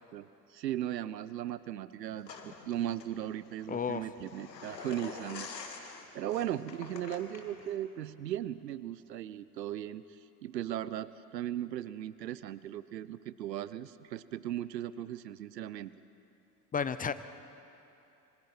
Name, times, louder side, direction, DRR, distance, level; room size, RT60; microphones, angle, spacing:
voice 1, 0.1-5.5 5.8-15.9, right 12 dB, 80° right, 16 dB, 0.8 m, -37 dB
sound 1, 2.2-7.8, left 5 dB, 85° left, 2.0 m, -47 dB
voice 2, 3.7-4.0 16.7-17.1, left 6 dB, 15° left, 13 dB, 0.7 m, -32 dB
26.5 x 25.0 x 4.5 m, 2.7 s
hypercardioid pair, 85°, 49 cm